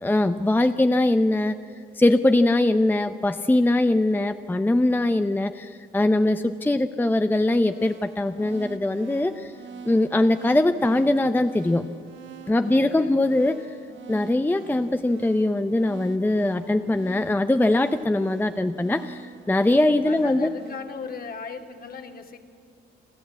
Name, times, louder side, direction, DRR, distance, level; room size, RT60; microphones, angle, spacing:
voice 1, 0.0-1.6 1.9-9.5 9.8-11.9 12.5-13.8 14.1-20.5, left 1 dB, 10° left, 9 dB, 0.6 m, -22 dB
sound 1, 7.6-20.8, right 5 dB, 75° right, 2.1 m, -44 dB
voice 2, 12.4-13.1 20.0-22.4, left 5 dB, 50° left, 5 dB, 2.4 m, -38 dB
29.0 x 12.5 x 8.5 m, 2.4 s
cardioid pair, 90°, 20 cm